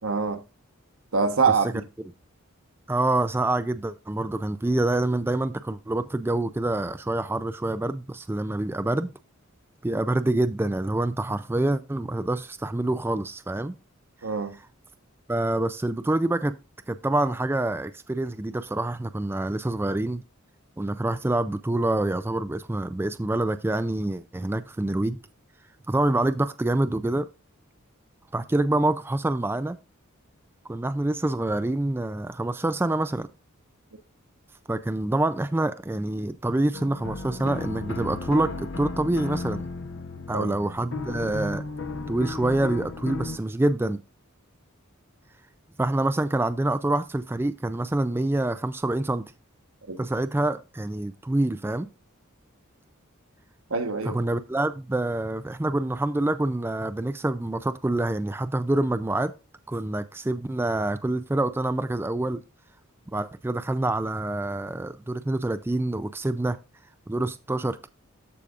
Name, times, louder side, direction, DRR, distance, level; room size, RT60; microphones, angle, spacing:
voice 1, 0.0-0.4 1.1-1.8 14.2-14.6 40.3-40.5 49.9-50.0 53.7-54.2, right 5 dB, 80° right, 1.2 m, -25 dB
voice 2, 2.9-9.1 9.8-13.8 15.3-16.6 16.9-20.2 20.8-25.2 25.9-27.3 28.3-29.8 30.7-33.3 34.7-39.6 40.3-41.6 42.1-44.0 45.8-49.2 50.0-51.9 54.1-59.3 59.7-62.4 63.1-66.6 67.1-67.9, right 2 dB, 10° right, 0.3 m, -26 dB
sound 1, 36.7-43.4, left 3 dB, 60° left, 0.8 m, -34 dB
13.5 x 4.9 x 2.4 m
head